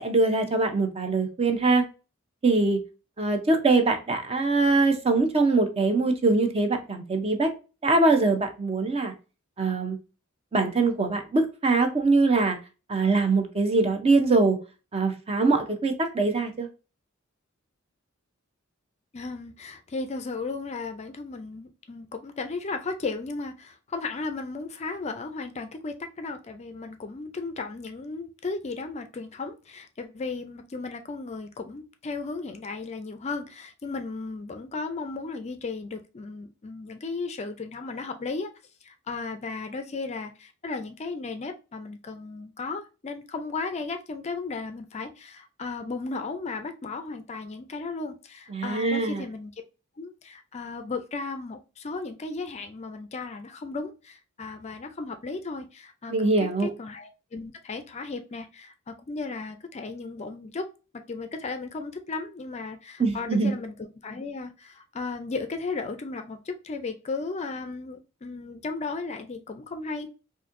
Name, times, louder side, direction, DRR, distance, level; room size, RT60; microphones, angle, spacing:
voice 1, 0.0-1.8 2.4-2.8 3.2-7.5 7.8-9.1 9.6-10.0 10.5-12.6 12.9-14.6 14.9-16.7 48.5-49.2 56.1-56.7 63.0-63.6, right 3 dB, 30° right, 0.6 m, -23 dB
voice 2, 19.1-38.5 38.8-49.5 50.0-56.3 56.6-60.7 60.9-70.1, left 3 dB, 30° left, 0.4 m, -35 dB
4.1 x 2.6 x 2.5 m
head